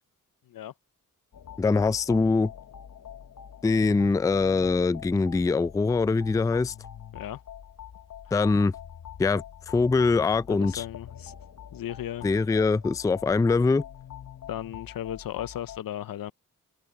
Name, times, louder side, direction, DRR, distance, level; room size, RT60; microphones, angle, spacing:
sound 1, 1.3-15.8, left 9 dB, 60° left, 1.0 m, -45 dB
voice 1, 1.6-2.5 3.6-6.7 8.3-8.7 9.2-10.8 12.2-13.8, left 4 dB, 10° left, 0.3 m, -23 dB
voice 2, 10.5-11.3 11.7-12.3 14.5-16.3, left 11 dB, 80° left, 0.6 m, -35 dB
open air
cardioid pair, 60°, 34 cm